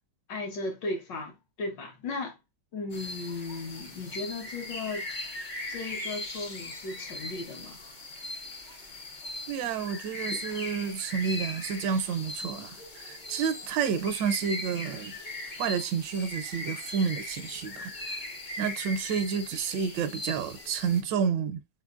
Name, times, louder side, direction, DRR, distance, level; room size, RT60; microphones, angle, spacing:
voice 1, 0.3-2.4 2.7-5.1 5.7-7.8 10.3-10.4, left 3 dB, 70° left, 1.8 m, -36 dB
sound 1, 2.9-21.0, left 2 dB, 45° left, 0.6 m, -39 dB
voice 2, 9.5-15.2 15.6-18.3 18.6-21.6, right 7 dB, 75° right, 1.3 m, -30 dB
4.2 x 4.0 x 2.4 m
omnidirectional pair, 2.1 m